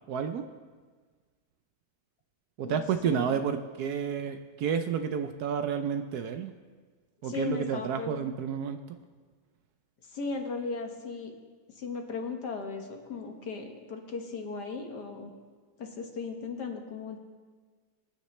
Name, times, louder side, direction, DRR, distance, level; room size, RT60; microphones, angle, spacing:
voice 1, 0.1-0.4 2.6-6.5 7.2-9.0, right 7 dB, 70° right, 8 dB, 1.1 m, -30 dB
voice 2, 2.6-3.4 7.2-8.3 10.1-11.3 11.8-15.3 15.8-17.2, left 4 dB, 65° left, 3 dB, 1.9 m, -37 dB
23.5 x 9.7 x 3.2 m, 1.5 s
omnidirectional pair, 1.9 m